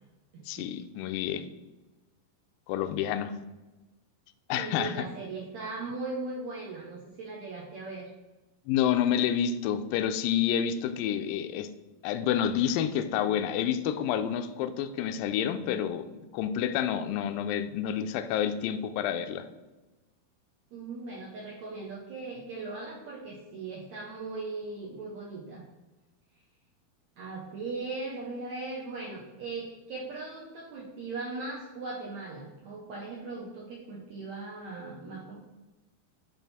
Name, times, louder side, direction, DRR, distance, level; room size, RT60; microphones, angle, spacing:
voice 1, 0.5-1.4 2.7-3.3 4.5-5.1 8.7-11.7 12.0-19.5, left 9 dB, 85° left, 8 dB, 2.0 m, -29 dB
voice 2, 4.6-8.1 20.7-25.6 27.2-35.4, right 3 dB, 80° right, -4 dB, 1.6 m, -38 dB
10.0 x 3.6 x 4.1 m, 1.1 s
omnidirectional pair, 4.6 m